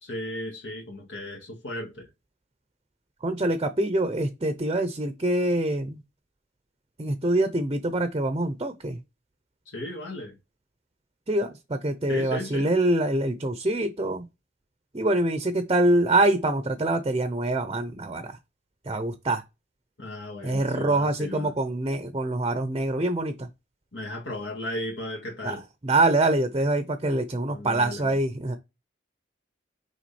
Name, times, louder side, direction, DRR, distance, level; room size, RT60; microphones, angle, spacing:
voice 1, 0.0-2.1 9.7-10.4 12.1-12.7 20.0-21.5 23.9-25.6 27.5-28.2, left 1 dB, 75° left, 2.0 m, -35 dB
voice 2, 3.2-6.0 7.0-9.0 11.3-14.3 14.9-18.4 18.8-19.4 20.4-23.5 25.4-25.6 25.8-28.6, right 2 dB, 30° right, 0.7 m, -25 dB
6.2 x 3.8 x 4.2 m
head